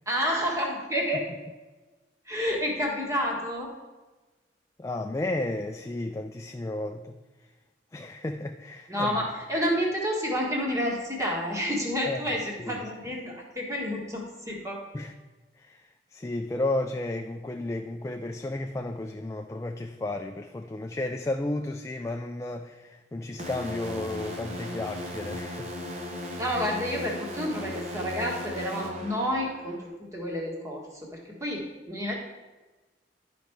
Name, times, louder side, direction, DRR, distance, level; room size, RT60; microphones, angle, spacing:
voice 1, 0.0-1.2 2.2-3.7 8.9-14.8 26.4-31.6 31.9-32.1, equal, 15° right, -1 dB, 1.6 m, -29 dB
voice 2, 4.8-7.1 7.9-9.1 12.1-12.2 12.6-12.8 14.9-15.1 15.6-25.7 26.0-26.3, left 2 dB, 15° left, 5 dB, 0.3 m, -33 dB
sound 1, 23.4-29.9, left 1 dB, 35° right, 1.1 m, -37 dB
11.0 x 5.2 x 4.5 m, 1.2 s
head